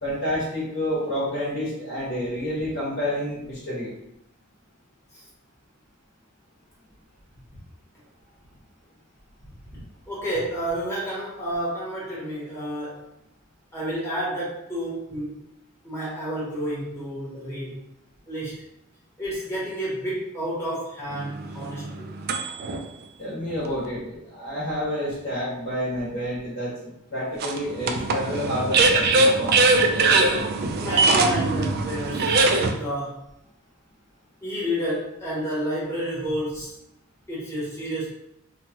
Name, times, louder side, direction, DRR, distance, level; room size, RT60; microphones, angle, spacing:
voice 1, 0.0-3.9 23.2-26.7 27.1-29.6, equal, 55° left, -8 dB, 1.2 m, -29 dB
voice 2, 10.1-13.1 13.7-15.4 15.8-17.9 18.3-18.6 19.2-22.1 30.7-32.3 32.8-33.3 34.4-36.7 37.3-38.1, equal, 15° left, -9 dB, 1.1 m, -30 dB
sound 1, 21.1-22.8 23.5-23.6 27.4-32.7, right 3 dB, 50° right, 0.3 m, -21 dB
3.0 x 2.3 x 2.8 m, 0.81 s
head